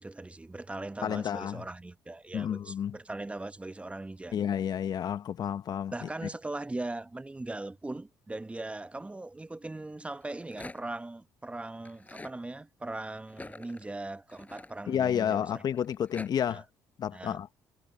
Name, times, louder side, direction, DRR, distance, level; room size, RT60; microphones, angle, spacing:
voice 1, 0.0-4.3 5.9-15.6 16.5-16.6 17.1-17.4, right 2 dB, 15° right, 1.0 m, -39 dB
voice 2, 1.0-1.6 2.3-3.0 4.3-6.1 14.9-16.6 17.0-17.5, left 9 dB, 55° left, 1.1 m, -30 dB
Rattle, 10.1-11.0 11.8-12.4 13.3-15.2 15.8-16.3, left 2 dB, 20° left, 6.2 m, -47 dB
supercardioid pair, 65°, 8 cm